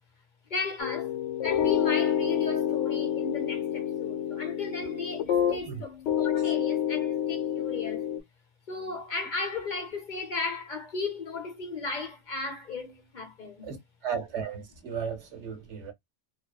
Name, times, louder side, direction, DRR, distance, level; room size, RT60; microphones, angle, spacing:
voice 1, 0.5-1.1 1.4-8.0 8.7-13.7, left 3 dB, 45° left, 0.8 m, -35 dB
sound 1, 0.8-5.8 6.1-8.2, left 10 dB, 75° left, 0.9 m, -28 dB
voice 2, 14.0-15.9, right 7 dB, 70° right, 1.2 m, -35 dB
2.8 x 2.0 x 2.3 m
omnidirectional pair, 1.2 m